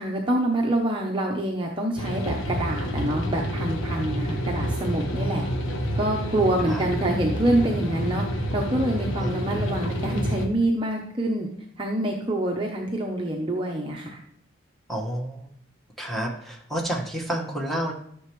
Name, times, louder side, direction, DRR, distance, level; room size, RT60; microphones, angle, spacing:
voice 1, 0.0-5.4 6.0-11.5 11.8-14.2, right 1 dB, 25° right, 0 dB, 0.8 m, -26 dB
sound 1, 2.0-10.5, equal, 80° left, 1.3 m, -28 dB
voice 2, 14.9-15.5 16.0-17.9, right 1 dB, ahead, -2 dB, 1.5 m, -29 dB
12.5 x 6.7 x 3.2 m, 0.68 s
head